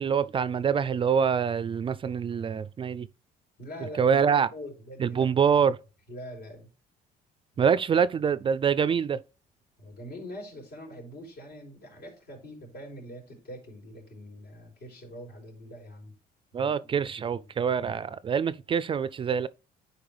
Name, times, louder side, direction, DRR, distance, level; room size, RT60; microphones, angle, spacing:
voice 1, 0.0-3.1 4.0-4.5 5.0-5.8 7.6-9.2 16.5-19.5, right 7 dB, 30° right, 0.3 m, -25 dB
voice 2, 3.6-4.2 4.5-5.3 6.1-6.7 7.5-7.8 9.8-16.2 16.5-17.5, equal, 75° left, 4.1 m, -44 dB
10.5 x 4.5 x 3.3 m
cardioid pair, 110°, 17 cm